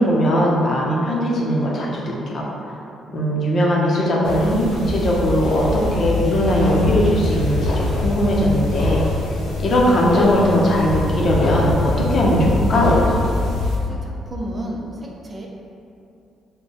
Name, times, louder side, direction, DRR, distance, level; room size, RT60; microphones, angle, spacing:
voice 1, 0.0-2.5 3.1-9.0 9.6-12.9, equal, 50° left, -3 dB, 0.7 m, -19 dB
sound 1, 4.2-13.8, left 2 dB, 90° left, 0.8 m, -23 dB
voice 2, 13.6-15.5, right 1 dB, 30° right, -2 dB, 0.5 m, -32 dB
4.0 x 2.2 x 3.4 m, 2.7 s
cardioid pair, 90°, 0 cm